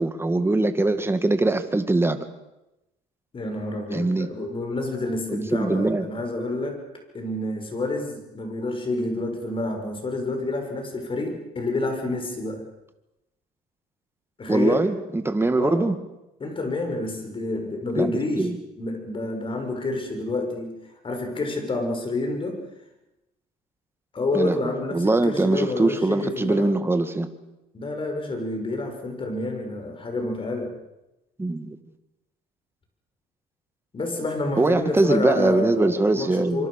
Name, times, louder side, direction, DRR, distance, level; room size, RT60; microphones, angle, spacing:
voice 1, 0.0-2.3 3.9-4.3 5.3-6.1 14.5-16.0 18.0-18.1 18.4-18.6 24.3-27.3 31.4-31.8 34.6-36.7, right 2 dB, 15° right, 9 dB, 2.1 m, -22 dB
voice 2, 3.3-6.8 7.1-12.6 14.4-14.9 15.6-15.9 16.4-20.7 21.0-22.6 24.1-26.7 27.7-30.7 33.9-36.7, left 2 dB, 30° left, 4 dB, 6.6 m, -28 dB
25.5 x 25.0 x 6.7 m, 0.94 s
cardioid pair, 110°, 17 cm